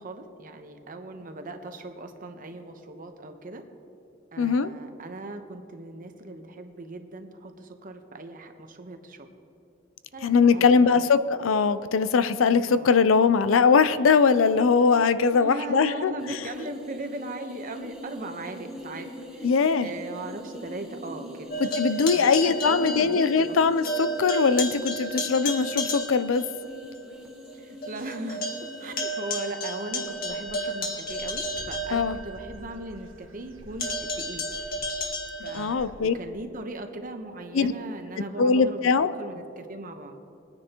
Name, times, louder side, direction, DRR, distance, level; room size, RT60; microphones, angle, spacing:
voice 1, 0.0-3.6 4.3-9.3 10.1-11.0 12.7-12.9 15.3-19.5 19.8-21.5 21.9-23.6 27.5-34.4 35.4-40.2, right 2 dB, 45° right, 6 dB, 1.0 m, -38 dB
voice 2, 4.4-4.7 10.2-16.1 19.4-19.9 21.8-26.4 31.9-32.2 35.5-36.1 37.5-37.7 38.4-39.1, left 5 dB, 80° left, 13 dB, 0.5 m, -21 dB
sound 1, 16.2-29.0, equal, ahead, 1.8 m, -42 dB
sound 2, 21.5-23.6 23.8-26.5 27.0-27.1 27.5-27.6 27.8-32.6 33.8-35.7, equal, 50° left, 1.7 m, -32 dB
Dog / Bird, 29.9-36.2, equal, 80° right, 1.4 m, -49 dB
22.5 x 9.7 x 2.9 m, 2.7 s
head